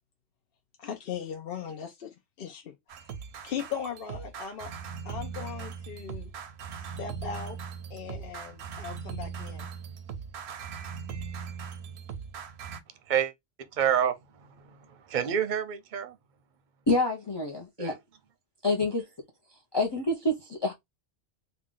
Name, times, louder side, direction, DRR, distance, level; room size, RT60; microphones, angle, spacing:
voice 1, 0.8-2.1 2.4-2.7 3.4-4.7 5.1-6.3 7.0-7.6 7.9-9.7, left 7 dB, 65° left, 0.8 m, -38 dB
sound 1, 2.9-12.8, right 6 dB, 85° right, 0.9 m, -39 dB
voice 2, 13.7-14.2 14.6-16.2 17.8-17.9, right 9 dB, 55° right, 0.7 m, -28 dB
voice 3, 16.9-17.9 18.6-19.1 19.7-20.7, left 2 dB, 30° left, 0.6 m, -27 dB
3.6 x 2.3 x 3.7 m
omnidirectional pair, 1.1 m